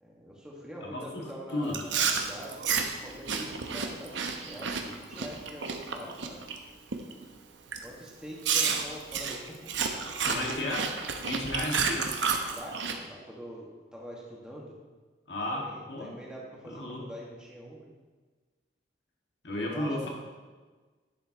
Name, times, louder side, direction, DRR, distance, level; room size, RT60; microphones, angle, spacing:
voice 1, 0.0-6.4 7.8-9.6 10.2-10.7 11.1-11.2 12.5-14.8 15.5-17.9 19.7-20.1, equal, 5° right, -4 dB, 1.6 m, -44 dB
voice 2, 0.8-1.8 10.3-10.9 11.2-12.1 15.3-16.2 16.6-17.1 19.4-20.1, left 1 dB, 70° left, -2 dB, 1.8 m, -33 dB
Chewing mastication, 1.7-6.6 6.9-7.2 7.7-7.8 8.4-13.0, right 6 dB, 80° right, 0.8 m, -31 dB
10.5 x 7.4 x 3.0 m, 1.3 s
head